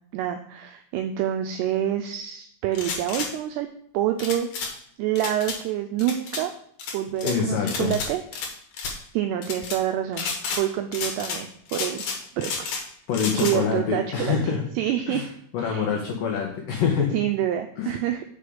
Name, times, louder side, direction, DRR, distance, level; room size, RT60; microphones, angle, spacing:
voice 1, 0.1-3.7 3.9-4.5 5.0-6.5 6.9-8.5 9.1-10.3 10.5-12.1 12.4-12.7 13.4-15.2 15.6-15.9 17.1-18.2, right 11 dB, 90° right, 5 dB, 2.3 m, -27 dB
sound 1, 2.7-3.3 4.2-4.7 5.2-5.6 6.0-6.4 6.8-7.4 7.7-8.5 8.7-9.0 9.4-9.8 10.1-10.6 10.9-11.4 11.7-12.8 13.1-13.6, left 5 dB, 65° left, 2.3 m, -31 dB
voice 2, 7.2-7.9 13.1-14.6 15.1-15.3 15.5-17.2 17.8-17.9, left 6 dB, 85° left, 1 dB, 1.9 m, -25 dB
6.4 x 5.0 x 6.9 m, 0.65 s
omnidirectional pair, 5.3 m